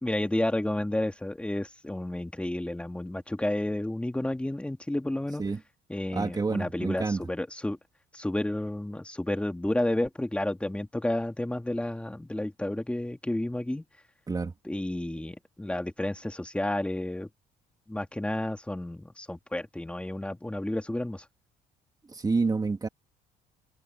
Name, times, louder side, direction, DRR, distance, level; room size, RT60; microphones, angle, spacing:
voice 1, 0.0-5.4 5.9-7.8 8.1-13.8 14.6-17.3 17.9-21.2, left 1 dB, 5° left, 2.7 m, -31 dB
voice 2, 6.1-7.2 14.3-14.5 22.1-22.9, right 4 dB, 20° right, 2.6 m, -28 dB
cardioid pair, 110°, 17 cm